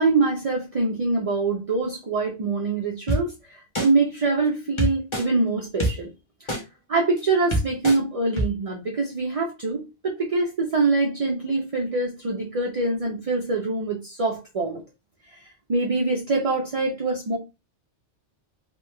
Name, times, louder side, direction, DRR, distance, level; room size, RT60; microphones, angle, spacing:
voice 1, 0.0-6.1 6.4-6.6 6.9-14.8 15.2-17.4, right 3 dB, 45° right, 0 dB, 0.5 m, -24 dB
sound 1, 3.1-3.2 3.7-3.9 4.8-5.2 5.8-5.9 6.5-6.6 7.2-7.3 7.5-8.0 8.4-8.5, right 1 dB, 30° left, 0.8 m, -23 dB
3.2 x 2.2 x 3.1 m, 0.25 s
omnidirectional pair, 1.2 m